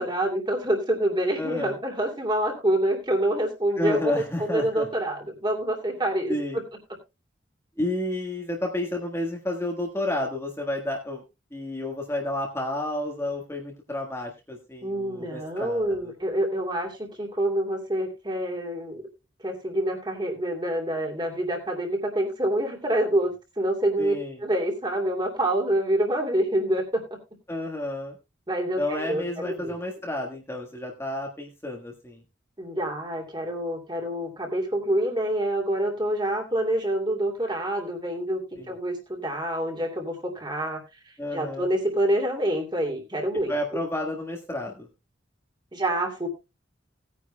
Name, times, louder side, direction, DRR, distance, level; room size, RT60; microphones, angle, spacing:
voice 1, 0.0-6.6 14.8-19.0 19.4-24.1 24.4-27.0 28.5-29.7 32.6-43.8 45.7-46.3, right 1 dB, 25° right, 2 dB, 2.6 m, -27 dB
voice 2, 1.4-1.8 3.8-4.9 6.3-6.6 7.8-11.2 11.5-16.1 24.0-24.4 27.5-28.2 28.8-32.2 38.6-38.7 41.2-41.7 43.5-44.9, left 1 dB, 15° left, 0 dB, 1.5 m, -31 dB
18.5 x 9.6 x 2.2 m, 0.25 s
head